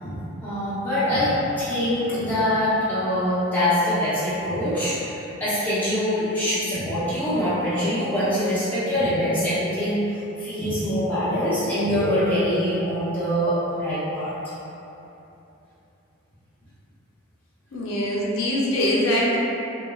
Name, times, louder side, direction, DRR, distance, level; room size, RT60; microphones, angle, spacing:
voice 1, 0.0-10.0 10.4-14.3, equal, 10° left, -14 dB, 0.7 m, -24 dB
voice 2, 17.7-19.4, left 1 dB, 80° left, -5 dB, 0.4 m, -23 dB
3.0 x 2.1 x 2.3 m, 3.0 s
head